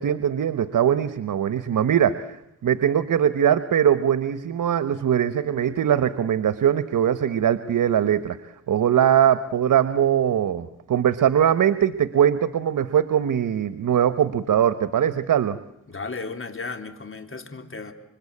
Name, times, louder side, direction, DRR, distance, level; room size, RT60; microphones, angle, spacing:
voice 1, 0.0-2.4 2.6-8.4 8.7-15.6, right 9 dB, 80° right, 12 dB, 1.1 m, -21 dB
voice 2, 15.9-17.9, left 4 dB, 40° left, 7 dB, 3.5 m, -34 dB
27.5 x 25.0 x 8.6 m, 0.83 s
cardioid pair, 70°, 31 cm